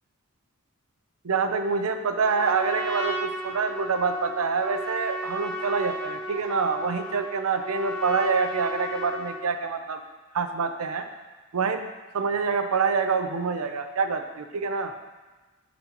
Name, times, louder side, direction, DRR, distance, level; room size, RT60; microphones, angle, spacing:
voice 1, 1.2-10.0 10.3-11.1 11.5-11.8 12.1-14.9, right 5 dB, 70° right, 7 dB, 0.6 m, -26 dB
Trumpet, 2.2-9.5, right 1 dB, 30° left, 1.3 m, -34 dB
11.0 x 4.2 x 2.9 m, 1.3 s
head